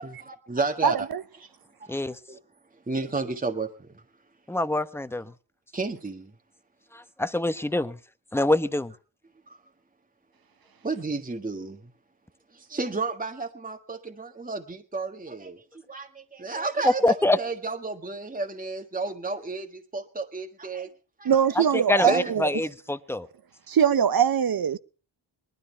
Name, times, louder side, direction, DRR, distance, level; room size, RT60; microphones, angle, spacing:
voice 1, 0.0-1.1 1.4-1.5 1.8-1.9 2.3-2.4 2.9-3.9 5.7-6.3 9.5-9.6 10.8-11.9 12.5-20.9 21.2-21.4 22.0-22.3, right 3 dB, 20° right, 1.6 m, -32 dB
voice 2, 0.8-1.2 21.2-22.4 23.7-24.8, right 8 dB, 50° right, 0.8 m, -22 dB
voice 3, 1.9-2.2 4.5-5.3 6.9-8.0 8.3-8.9 16.8-17.4 21.9-23.3, left 2 dB, 5° left, 1.0 m, -25 dB
19.5 x 12.5 x 4.5 m
cardioid pair, 70°, 45 cm